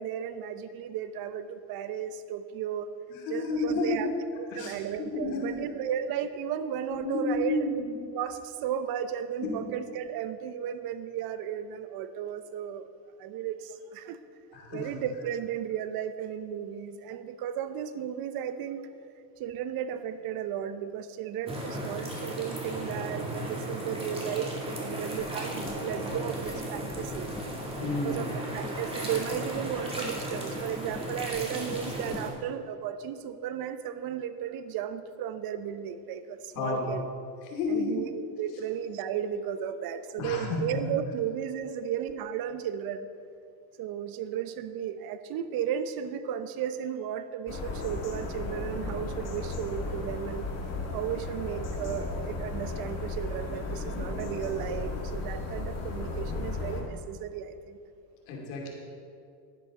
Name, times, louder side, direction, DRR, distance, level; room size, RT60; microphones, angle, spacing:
voice 1, 0.0-2.9 3.3-4.1 4.4-7.7 8.1-12.9 13.2-14.2 14.5-18.9 19.4-27.3 27.8-37.0 37.7-43.1 43.8-50.5 50.9-57.8, right 9 dB, 55° right, 11 dB, 0.8 m, -34 dB
voice 2, 3.1-4.1 4.5-4.8 5.1-5.7 6.9-8.0 9.4-9.5 14.5-14.9 27.8-28.4 36.5-37.0 37.4-38.0 40.2-40.8 58.3-58.7, left 3 dB, 85° left, -1 dB, 2.5 m, -31 dB
sound 1, 21.5-32.3, right 1 dB, 15° right, 2.2 m, -35 dB
sound 2, 24.1-32.3, left 3 dB, 10° left, 0.4 m, -47 dB
sound 3, 47.5-56.8, left 3 dB, 35° left, 2.0 m, -35 dB
11.0 x 10.0 x 3.7 m, 2.4 s
supercardioid pair, 105°, 42 cm